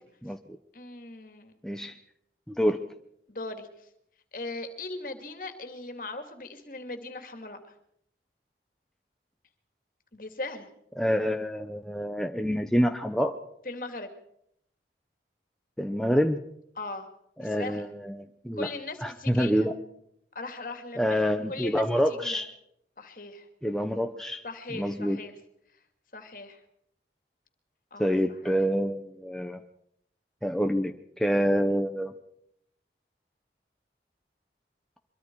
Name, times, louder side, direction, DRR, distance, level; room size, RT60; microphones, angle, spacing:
voice 1, 0.7-1.5 3.3-3.9 4.3-7.7 10.1-10.7 13.6-14.1 16.8-17.1 17.4-17.9 18.6-19.7 20.3-22.4 23.0-23.5 24.4-25.3 26.1-26.6 27.9-28.2 28.4-28.6, left 2 dB, 50° left, 7 dB, 2.5 m, -39 dB
voice 2, 1.6-1.9 2.5-2.8 11.0-13.4 15.8-16.4 17.4-18.7 19.0-19.8 21.0-22.5 23.6-24.4 24.7-25.2 28.0-29.6 30.4-32.1, equal, 5° left, 5 dB, 0.8 m, -27 dB
24.0 x 23.0 x 4.7 m, 0.76 s
head